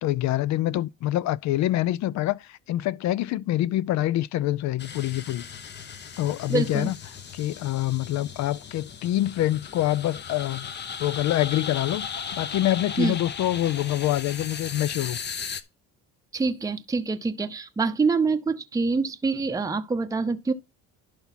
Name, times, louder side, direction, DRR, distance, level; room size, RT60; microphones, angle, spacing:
voice 1, 0.0-5.4 6.2-6.9 7.3-10.7 11.0-15.2, left 14 dB, 60° left, 0.5 m, -26 dB
sound 1, 4.8-15.6, left 6 dB, 35° left, 0.8 m, -37 dB
voice 2, 6.5-6.9 13.0-13.2 16.3-20.5, right 4 dB, 10° right, 0.7 m, -25 dB
11.5 x 4.6 x 4.1 m
cardioid pair, 100°, 32 cm